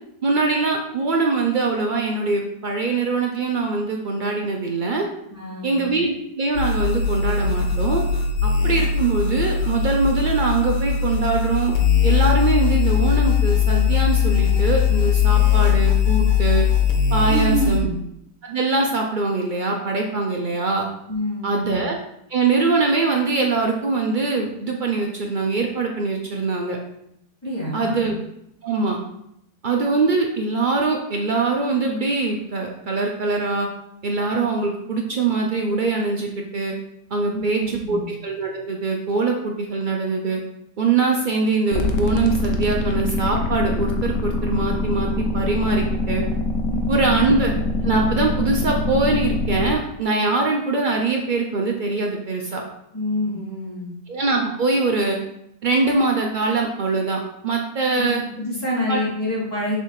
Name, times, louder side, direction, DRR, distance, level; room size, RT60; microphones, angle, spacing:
voice 1, 0.2-5.1 5.6-8.0 8.4-11.7 12.0-16.7 17.1-17.9 18.4-20.9 21.4-22.0 22.3-26.8 27.7-28.1 28.6-29.0 29.6-33.7 34.0-36.7 37.1-40.4 40.8-46.2 46.9-47.5 47.8-52.6 54.1-55.2 55.6-58.2 58.9-59.0, right 3 dB, 80° right, 1 dB, 0.4 m, -22 dB
voice 2, 5.3-5.9 17.3-17.9 21.1-21.8 27.4-28.1 37.3-38.0 46.7-47.2 52.9-53.9 58.0-59.8, left 1 dB, 10° left, -7 dB, 2.6 m, -27 dB
sound 1, 6.5-17.8, left 7 dB, 85° left, 1.6 m, -20 dB
sound 2, 41.7-49.7, left 2 dB, 55° left, 1.0 m, -24 dB
6.8 x 3.4 x 4.7 m, 0.77 s
omnidirectional pair, 1.8 m